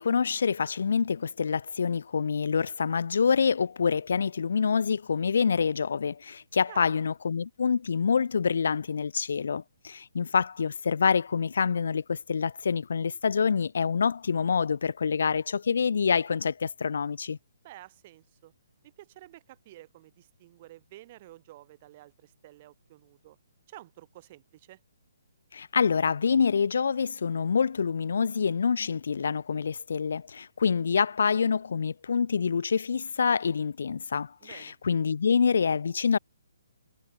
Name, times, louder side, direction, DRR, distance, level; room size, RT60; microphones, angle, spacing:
voice 1, 0.0-17.4 25.5-36.2, left 6 dB, 70° left, 0.3 m, -26 dB
voice 2, 6.7-7.0 17.6-18.5 18.8-23.4 23.7-24.8 34.4-34.8, right 16 dB, 35° right, 1.9 m, -51 dB
hypercardioid pair, 145°, 0 cm